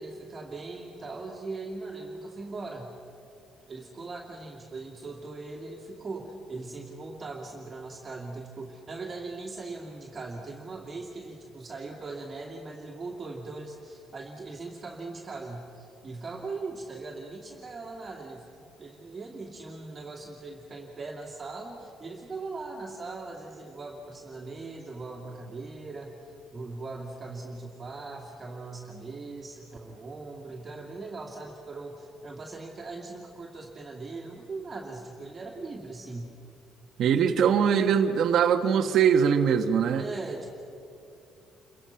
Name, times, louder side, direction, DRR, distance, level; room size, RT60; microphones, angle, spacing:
voice 1, 0.0-2.9 3.7-26.1 26.5-36.4 40.0-40.5, right 3 dB, 20° right, -2 dB, 2.5 m, -40 dB
voice 2, 37.0-40.0, right 7 dB, 55° right, 5 dB, 1.3 m, -22 dB
29.0 x 24.0 x 5.8 m, 2.6 s
cardioid pair, 170°, 0 cm